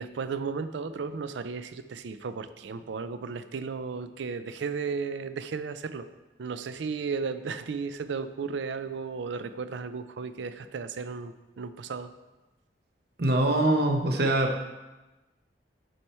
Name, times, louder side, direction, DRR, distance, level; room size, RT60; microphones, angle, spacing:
voice 1, 0.0-6.1 6.4-12.1, right 5 dB, 75° right, 11 dB, 0.4 m, -34 dB
voice 2, 13.2-14.5, right 1 dB, 55° right, 4 dB, 0.8 m, -23 dB
7.8 x 4.4 x 4.3 m, 1.1 s
head